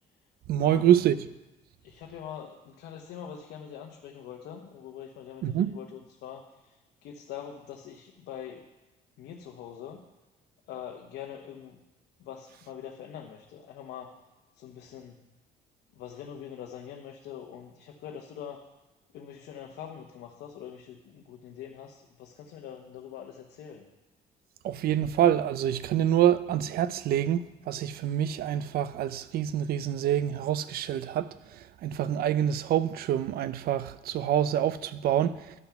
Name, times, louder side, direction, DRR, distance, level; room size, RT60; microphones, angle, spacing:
voice 1, 0.5-1.2 5.4-5.8 24.6-35.5, right 10 dB, 65° right, 0.5 m, -26 dB
voice 2, 1.8-8.7 9.2-10.0 10.7-11.8 12.2-14.1 14.6-15.2 15.9-18.6 19.1-23.9, left 9 dB, 75° left, 1.0 m, -43 dB
12.0 x 5.8 x 5.8 m
cardioid pair, 110°, 17 cm